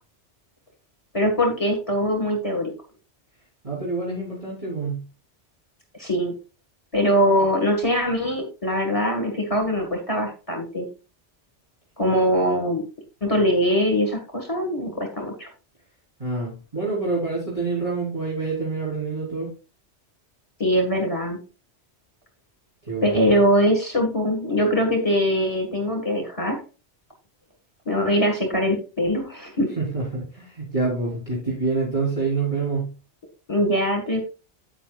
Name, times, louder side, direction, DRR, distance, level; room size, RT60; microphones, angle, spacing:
voice 1, 1.1-2.7 6.0-6.3 6.9-10.9 12.0-12.8 13.2-15.5 20.6-21.4 23.0-26.6 27.9-29.7 33.5-34.2, equal, 30° left, 1 dB, 1.7 m, -22 dB
voice 2, 3.6-5.0 16.2-19.5 22.8-23.3 29.8-32.9, right 3 dB, 30° right, -5 dB, 3.7 m, -27 dB
10.0 x 8.6 x 2.3 m, 0.33 s
omnidirectional pair, 1.2 m